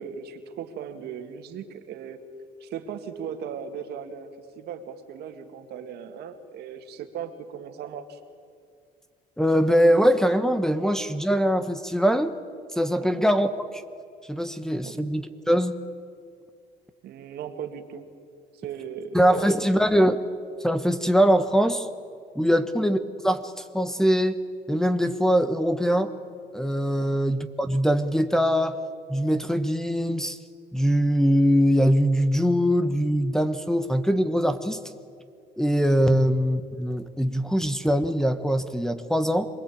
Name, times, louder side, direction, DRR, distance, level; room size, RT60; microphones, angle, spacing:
voice 1, 0.0-2.2 2.6-8.2 13.0-13.2 14.8-15.0 17.0-18.1 18.5-19.5 22.5-22.7 27.0-27.2, right 7 dB, 75° right, 6 dB, 2.3 m, -37 dB
voice 2, 9.4-12.4 12.7-13.8 14.3-15.8 19.1-20.2 20.6-21.9 22.3-23.0 23.2-24.4 24.7-26.1 26.5-28.8 29.1-30.4 30.7-34.8 35.6-39.5, equal, 5° left, 10 dB, 1.2 m, -22 dB
26.5 x 20.5 x 8.7 m, 2.2 s
cardioid pair, 110°, 17 cm